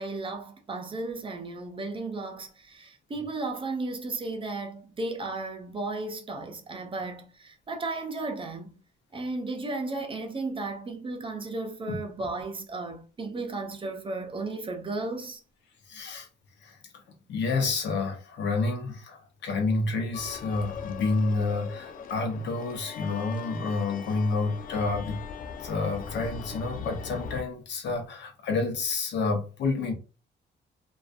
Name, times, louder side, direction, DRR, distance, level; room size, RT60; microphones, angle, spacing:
voice 1, 0.0-8.8 9.1-15.4, right 3 dB, 30° right, 0.5 m, -34 dB
voice 2, 15.9-16.3 16.6-16.8 17.3-25.2 25.6-29.9, left 3 dB, 75° left, 0.8 m, -29 dB
sound 1, 20.1-27.4, left 6 dB, 50° left, 0.4 m, -40 dB
2.4 x 2.3 x 2.4 m
cardioid pair, 120°, 18 cm